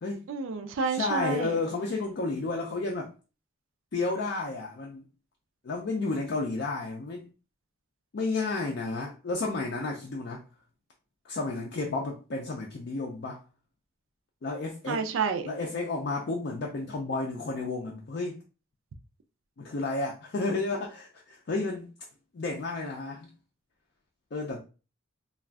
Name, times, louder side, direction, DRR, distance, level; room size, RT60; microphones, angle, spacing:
voice 1, 0.3-1.5 14.9-15.5, right 5 dB, 75° right, 0.4 m, -29 dB
voice 2, 0.9-3.1 3.9-5.0 5.6-7.3 8.1-10.4 11.2-13.4 14.4-15.0 15.4-18.4 19.6-21.9 22.3-23.3 24.3-24.6, left 3 dB, 55° left, 0.4 m, -32 dB
2.4 x 2.3 x 3.3 m
head